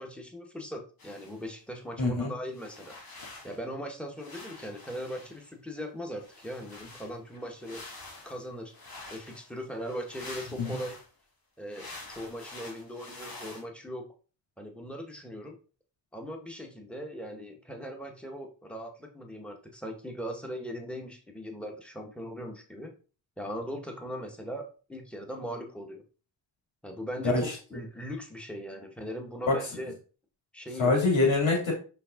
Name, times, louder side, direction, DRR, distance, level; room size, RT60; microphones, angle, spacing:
voice 1, 0.0-3.0 3.4-7.8 8.2-8.7 9.1-11.0 11.6-14.0 14.6-15.6 16.1-22.9 23.4-26.0 26.8-29.9 30.5-30.9, equal, ahead, 3 dB, 2.0 m, -39 dB
sound 1, 1.0-1.5 2.5-3.6 4.2-5.5 6.2-11.1 11.7-13.6, left 2 dB, 50° left, 2.3 m, -47 dB
voice 2, 2.0-2.3 10.6-10.8 27.2-27.5 29.5-29.7 30.8-31.7, left 3 dB, 80° left, -1 dB, 2.9 m, -25 dB
5.7 x 4.2 x 3.9 m, 0.36 s
cardioid pair, 40°, 46 cm